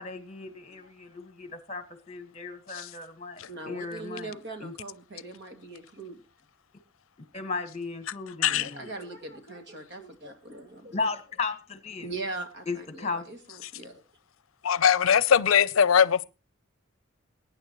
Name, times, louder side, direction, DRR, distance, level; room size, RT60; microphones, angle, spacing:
voice 1, 0.0-4.7 7.3-8.9 10.9-12.1 12.7-13.3, left 4 dB, 30° left, 1.5 m, -35 dB
voice 2, 3.5-6.2 8.4-11.1 12.0-14.0, right 2 dB, 55° right, 2.3 m, -41 dB
voice 3, 14.6-16.2, left 7 dB, 80° left, 0.5 m, -21 dB
21.5 x 9.6 x 3.0 m
head